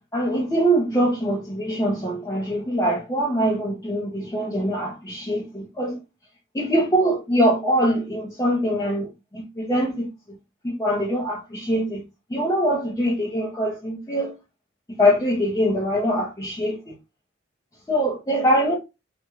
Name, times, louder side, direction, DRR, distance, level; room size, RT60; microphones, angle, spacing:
voice 1, 0.1-6.0 6.5-10.1 10.6-12.0 12.3-14.3 14.9-16.8 17.9-18.7, equal, 20° left, 0.5 m, -23 dB
2.4 x 2.1 x 3.0 m
head